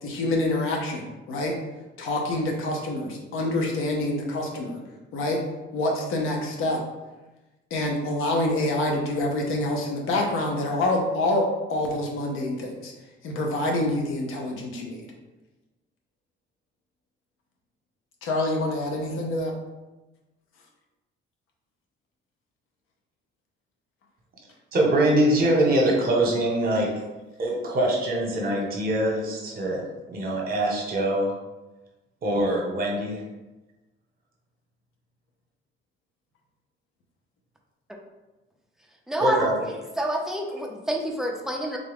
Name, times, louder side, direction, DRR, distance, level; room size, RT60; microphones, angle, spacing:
voice 1, 0.0-1.5 2.0-4.8 5.1-5.4 5.7-6.8 7.7-12.9 13.2-15.1 18.2-19.5, left 1 dB, 85° left, 1 dB, 0.8 m, -26 dB
voice 2, 24.7-26.9 27.4-31.3 32.2-33.2 39.2-39.6, right 1 dB, 45° right, -1 dB, 1.0 m, -23 dB
voice 3, 39.1-39.5 40.0-41.8, right 1 dB, ahead, 0 dB, 0.5 m, -28 dB
3.7 x 2.3 x 3.5 m, 1.1 s
cardioid pair, 120°, 21 cm